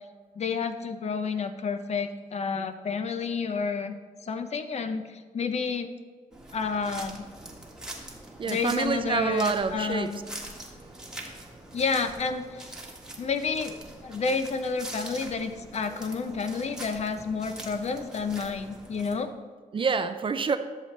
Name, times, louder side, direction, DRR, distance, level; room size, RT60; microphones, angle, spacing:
voice 1, 0.4-3.9 4.2-5.9 6.5-7.2 8.5-10.2 11.7-12.7 13.2-19.3, left 5 dB, 50° left, 9 dB, 0.7 m, -30 dB
sound 1, 6.3-19.2, right 1 dB, 5° right, 1.5 m, -43 dB
voice 2, 8.4-10.1 19.7-20.6, right 5 dB, 40° right, 10 dB, 0.5 m, -27 dB
12.0 x 6.7 x 3.3 m, 1.5 s
cardioid pair, 105°, 14 cm